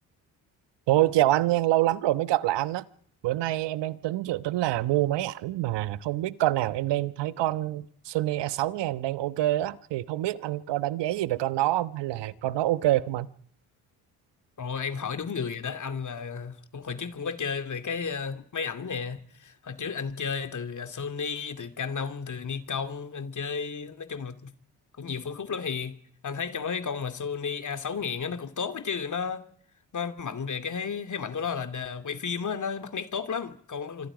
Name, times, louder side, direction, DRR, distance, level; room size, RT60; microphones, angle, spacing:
voice 1, 0.9-2.8 3.2-13.3, right 15 dB, 70° right, 1.2 m, -26 dB
voice 2, 14.6-24.5 25.0-26.0 26.2-29.5 29.9-34.1, left 6 dB, 45° left, 2.6 m, -33 dB
26.5 x 26.0 x 5.1 m
supercardioid pair, 60°, 43 cm